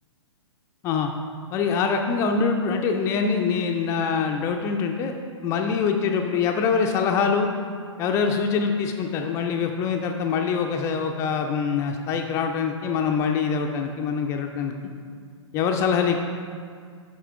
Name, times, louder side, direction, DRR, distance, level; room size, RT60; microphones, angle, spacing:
voice 1, 1.5-5.1 5.4-7.5 8.0-14.7 15.5-16.2, left 5 dB, 15° left, 4 dB, 0.4 m, -24 dB
8.1 x 6.0 x 4.7 m, 2.1 s
figure-of-eight pair, 115°, 16 cm